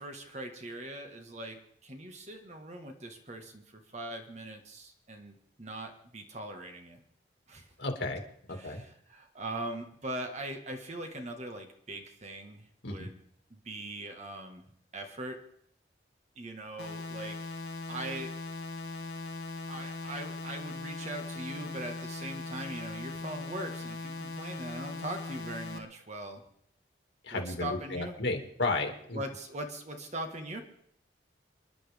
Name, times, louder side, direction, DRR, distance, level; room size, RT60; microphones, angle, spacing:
voice 1, 0.0-7.0 7.5-7.7 8.5-13.1 13.6-14.6 14.9-15.4 16.3-17.4 17.9-18.3 19.7-26.4 27.3-28.1 29.1-30.6, right 1 dB, 40° right, 4 dB, 1.7 m, -41 dB
voice 2, 7.8-8.8 12.8-13.1 27.2-29.2, left 2 dB, 90° left, 3 dB, 2.2 m, -33 dB
sound 1, 16.8-25.8, left 3 dB, 70° left, 1.5 m, -40 dB
29.5 x 10.5 x 3.5 m, 0.68 s
head